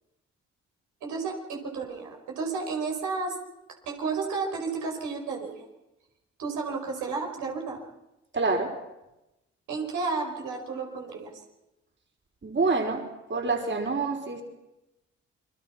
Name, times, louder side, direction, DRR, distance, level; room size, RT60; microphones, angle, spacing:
voice 1, 1.0-3.4 3.9-5.7 6.4-7.8 9.7-11.3, right 4 dB, 80° right, 1 dB, 5.4 m, -32 dB
voice 2, 8.3-8.7 12.4-13.0 13.3-14.4, right 3 dB, 40° right, 3 dB, 5.0 m, -26 dB
29.0 x 23.0 x 5.9 m, 0.93 s
hypercardioid pair, 50°, 30 cm